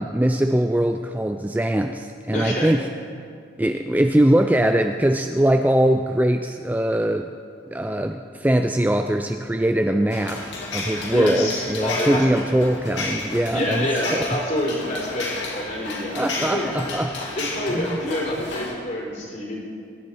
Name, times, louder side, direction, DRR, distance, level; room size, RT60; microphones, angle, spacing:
voice 1, 0.0-2.9 3.6-7.3 7.7-14.4 16.1-17.2 17.7-18.0, right 1 dB, 10° right, 6 dB, 0.3 m, -22 dB
voice 2, 2.3-2.8 11.1-12.4 13.5-16.7 17.4-19.6, left 1 dB, 40° left, -3 dB, 3.6 m, -27 dB
sound 1, 10.1-18.7, left 2 dB, 65° left, 2.3 m, -32 dB
21.5 x 10.5 x 4.5 m, 2.2 s
head